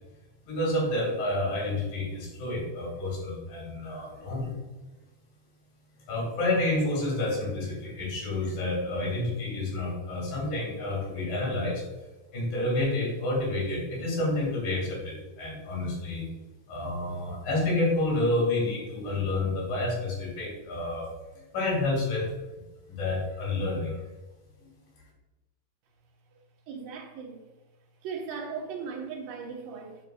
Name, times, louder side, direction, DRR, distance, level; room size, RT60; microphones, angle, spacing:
voice 1, 0.4-4.6 6.1-11.8 12.3-16.3 16.7-21.1 21.5-22.3 22.9-24.0, left 2 dB, 75° left, -3 dB, 3.9 m, -29 dB
voice 2, 26.7-27.4 28.0-30.0, right 5 dB, 80° right, 0 dB, 2.8 m, -37 dB
10.0 x 4.6 x 2.3 m, 1.1 s
omnidirectional pair, 3.9 m